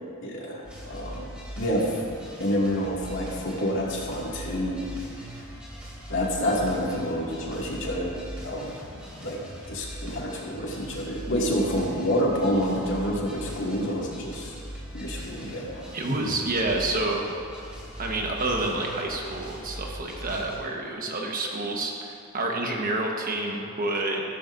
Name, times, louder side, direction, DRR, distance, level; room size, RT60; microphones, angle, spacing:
voice 1, 0.2-1.3 1.6-1.9 2.4-4.8 6.1-8.8 9.2-9.4 9.7-14.6 14.9-15.8, equal, 60° left, -4 dB, 2.3 m, -28 dB
sound 1, 0.6-20.6, equal, 5° right, 2.9 m, -40 dB
voice 2, 15.9-17.2 18.0-24.2, right 2 dB, 40° right, 0 dB, 1.3 m, -28 dB
15.0 x 13.5 x 2.6 m, 2.5 s
head